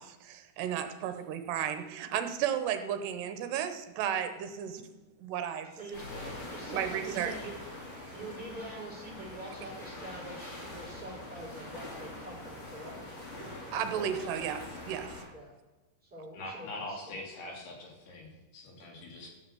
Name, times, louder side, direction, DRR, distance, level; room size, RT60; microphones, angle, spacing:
voice 1, 0.0-4.8 5.2-5.7 6.7-7.4 8.1-8.2 13.7-15.3, right 9 dB, 75° right, 9 dB, 2.8 m, -34 dB
voice 2, 5.7-6.1 6.5-7.6 8.1-12.9 13.9-14.4 15.3-15.5 16.0-17.1, right 1 dB, ahead, -6 dB, 3.2 m, -45 dB
sound 1, 5.9-15.2, left 1 dB, 45° left, 6.1 m, -44 dB
voice 3, 16.3-19.3, left 1 dB, 65° left, -1 dB, 4.1 m, -43 dB
13.5 x 5.7 x 7.7 m, 1.2 s
omnidirectional pair, 5.2 m